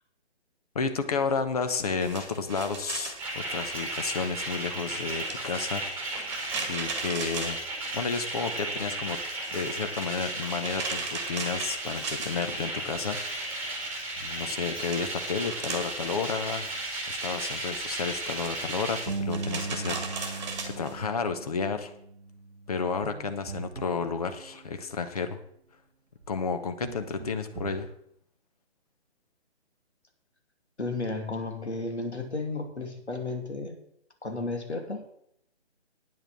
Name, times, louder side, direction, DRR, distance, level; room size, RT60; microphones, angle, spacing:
voice 1, 0.7-6.3 6.7-7.6 7.9-9.2 9.5-13.9 14.2-16.7 17.1-21.9 22.7-25.4 26.3-27.9, left 5 dB, 35° left, 8 dB, 1.0 m, -32 dB
sound 1, 1.8-8.4 8.7-13.1 13.4-21.0, right 4 dB, 25° right, 1.6 m, -39 dB
sound 2, 3.0-19.0, right 2 dB, 5° right, 2.0 m, -35 dB
sound 3, 19.1-25.0 26.2-26.3 26.8-27.9, right 3 dB, 80° right, 0.9 m, -39 dB
voice 2, 30.8-33.8 34.2-35.0, left 3 dB, 75° left, 4 dB, 2.5 m, -33 dB
9.5 x 7.9 x 6.1 m, 0.71 s
figure-of-eight pair, 145°, 34 cm